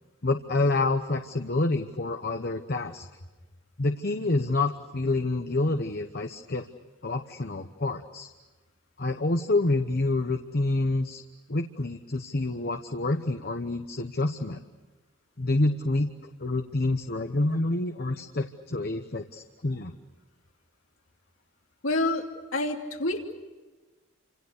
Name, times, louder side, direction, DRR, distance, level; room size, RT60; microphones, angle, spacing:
voice 1, 0.2-3.1 3.8-6.7 7.0-8.3 9.0-11.2 11.5-14.6 15.4-16.1 16.4-19.9, left 2 dB, 55° left, 6 dB, 1.0 m, -27 dB
voice 2, 21.8-22.3 22.5-23.3, left 2 dB, 90° left, 1 dB, 3.1 m, -27 dB
29.5 x 26.5 x 6.7 m, 1.2 s
head